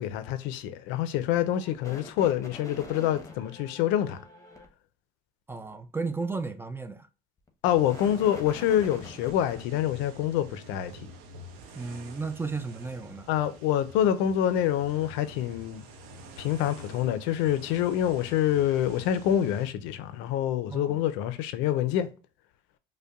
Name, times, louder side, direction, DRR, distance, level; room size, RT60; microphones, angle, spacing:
voice 1, 0.0-4.2 7.6-11.1 13.3-15.8 16.4-22.1, left 11 dB, 75° left, 0.5 m, -26 dB
sound 1, 1.5-4.7 7.5-9.6, left 3 dB, 15° left, 0.9 m, -45 dB
voice 2, 5.5-7.1 11.7-13.3 20.7-21.0, right 4 dB, 10° right, 0.4 m, -34 dB
sound 2, 7.7-19.7, right 1 dB, 90° right, 0.6 m, -47 dB
5.1 x 2.2 x 2.3 m
supercardioid pair, 80°, 20 cm